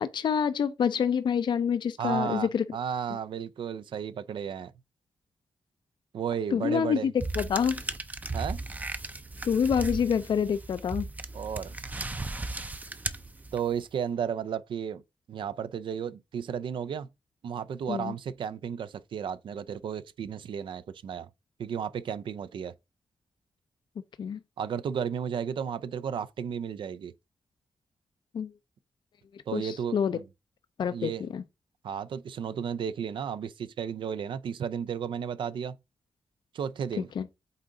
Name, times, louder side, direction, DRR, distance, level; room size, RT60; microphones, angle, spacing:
voice 1, 0.0-2.6 6.5-7.8 9.4-11.1 17.9-18.1 24.2-24.4 28.3-28.5 29.5-30.2 30.8-31.4 37.0-37.3, left 7 dB, 65° left, 0.5 m, -27 dB
voice 2, 2.0-4.7 6.1-7.1 8.3-8.6 11.3-11.8 13.5-15.0 15.3-17.1 17.4-21.3 21.6-22.7 24.6-27.1 29.5-30.2 30.9-31.2 31.8-35.8 36.5-37.1, right 8 dB, 75° right, 0.5 m, -33 dB
sound 1, 7.2-13.8, right 2 dB, 20° right, 0.5 m, -36 dB
8.3 x 3.8 x 3.7 m
wide cardioid pair, 120°, 8 cm